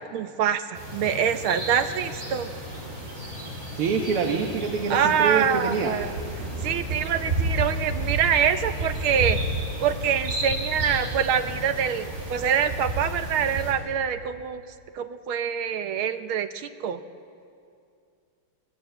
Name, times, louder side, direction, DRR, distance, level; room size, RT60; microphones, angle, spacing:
voice 1, 0.1-2.5 4.9-6.1 6.6-9.4 9.8-14.6 15.0-17.0, right 8 dB, 75° right, 10 dB, 1.7 m, -25 dB
sound 1, 0.7-13.7, right 1 dB, 35° right, 5.1 m, -32 dB
voice 2, 3.7-5.9, right 5 dB, 90° right, 3 dB, 2.2 m, -25 dB
25.0 x 18.5 x 7.9 m, 2.4 s
omnidirectional pair, 2.4 m